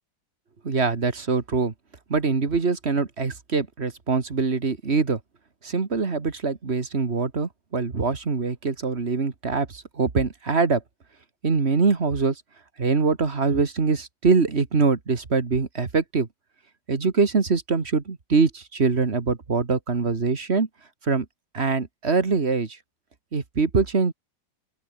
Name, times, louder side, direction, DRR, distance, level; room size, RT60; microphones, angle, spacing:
voice 1, 0.6-1.7 2.1-5.2 5.6-10.8 11.4-12.4 12.8-16.3 16.9-20.7 21.0-21.3 21.5-22.8 23.3-24.1, right 4 dB, 35° right, 2.1 m, -23 dB
open air
omnidirectional pair, 1.9 m